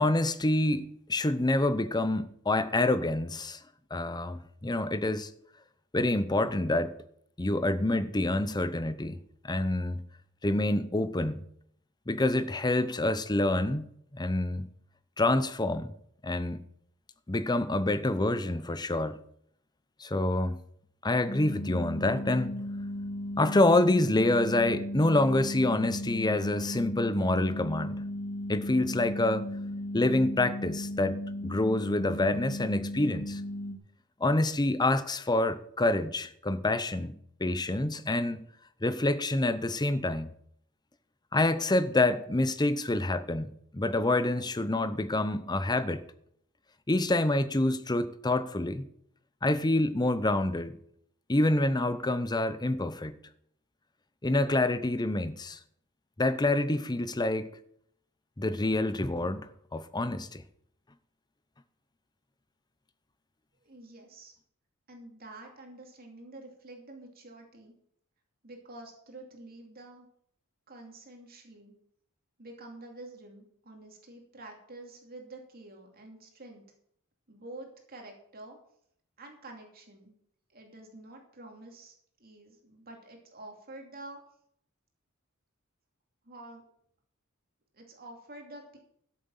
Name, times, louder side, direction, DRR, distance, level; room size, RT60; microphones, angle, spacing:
voice 1, 0.0-3.6 3.9-5.3 5.9-6.9 7.4-10.0 10.4-11.4 12.1-14.7 15.2-15.9 16.2-16.6 17.3-19.2 20.0-20.6 21.0-22.5 23.4-28.0 28.5-29.5 29.9-31.2 31.4-33.4 34.2-37.1 37.4-38.5 38.8-40.3 41.3-46.0 46.9-48.9 49.4-50.8 51.3-53.2 54.2-55.6 56.2-57.5 58.4-60.4, left 2 dB, 20° left, 0.8 m, -27 dB
sound 1, 21.3-33.7, left 1 dB, 45° left, 2.3 m, -36 dB
voice 2, 63.6-64.3 64.9-67.7 68.4-70.1 70.7-71.7 72.4-76.6 77.3-78.6 79.2-80.2 80.5-81.9 82.2-84.2 86.2-86.6 87.7-88.8, right 2 dB, 45° right, 2.7 m, -48 dB
13.0 x 7.6 x 7.2 m
head